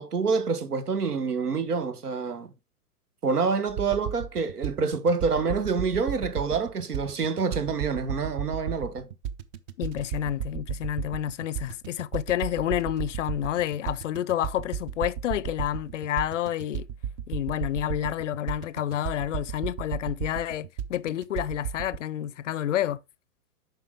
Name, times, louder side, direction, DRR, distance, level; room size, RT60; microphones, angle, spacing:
voice 1, 0.0-2.5 3.2-9.1, right 5 dB, 80° right, 1.4 m, -27 dB
sound 1, 3.7-22.0, right 9 dB, 30° right, 0.6 m, -34 dB
voice 2, 9.8-16.9 17.3-23.0, left 11 dB, 55° left, 0.6 m, -29 dB
8.1 x 5.4 x 3.6 m
hypercardioid pair, 120°, 46 cm